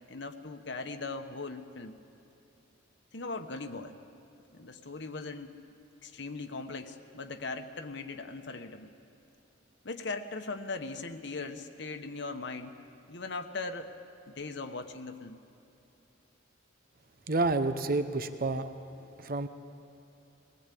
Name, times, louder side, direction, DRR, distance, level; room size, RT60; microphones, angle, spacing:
voice 1, 0.1-2.0 3.1-4.0 4.5-5.6 6.0-8.9 9.8-12.7 13.1-13.9 14.3-15.4, left 3 dB, 60° left, 7 dB, 1.1 m, -39 dB
voice 2, 17.3-18.7 19.2-19.5, right 3 dB, 45° right, 10 dB, 0.9 m, -29 dB
22.0 x 18.0 x 8.4 m, 2.9 s
head